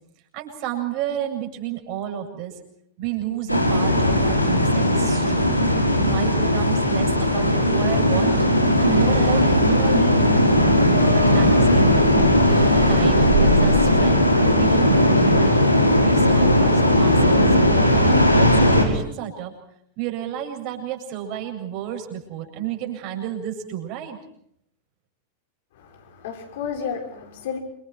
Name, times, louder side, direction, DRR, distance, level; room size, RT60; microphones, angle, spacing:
voice 1, 0.3-2.6 3.0-5.5 6.0-8.4 8.8-10.7 11.1-12.2 12.9-15.6 16.0-19.5 20.0-24.2, right 11 dB, 45° right, 4 dB, 7.7 m, -31 dB
sound 1, 3.5-18.8, left 1 dB, 85° left, 5.6 m, -18 dB
sound 2, 7.7-15.3, right 3 dB, 60° right, 4.5 m, -29 dB
voice 2, 25.7-27.6, left 7 dB, 55° left, 2 dB, 6.2 m, -32 dB
29.5 x 27.0 x 4.8 m, 0.70 s
figure-of-eight pair, 90°, 0 cm